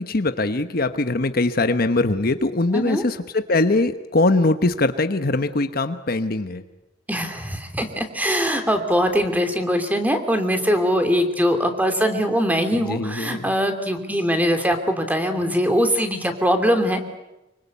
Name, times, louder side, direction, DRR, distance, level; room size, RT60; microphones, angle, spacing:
voice 1, 0.0-6.6 12.7-13.5, left 2 dB, 55° left, 9 dB, 1.1 m, -22 dB
voice 2, 7.1-17.1, equal, 10° right, 6 dB, 2.9 m, -22 dB
25.5 x 24.5 x 8.4 m, 0.95 s
head